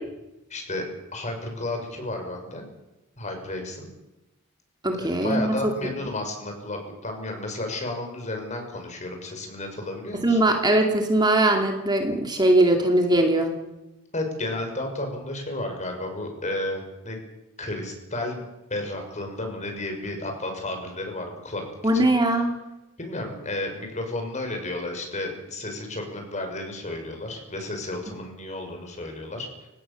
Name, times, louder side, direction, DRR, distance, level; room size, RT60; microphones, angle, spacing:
voice 1, 0.5-0.9 1.1-2.7 3.2-3.9 4.9-10.4 14.1-17.2 17.6-18.4 18.7-21.6 21.9-22.1 23.0-29.7, left 1 dB, 35° left, 4 dB, 6.2 m, -32 dB
voice 2, 4.8-5.6 10.2-13.5 21.8-22.5, right 1 dB, 20° right, 3 dB, 2.5 m, -20 dB
29.5 x 17.5 x 7.0 m, 0.97 s
head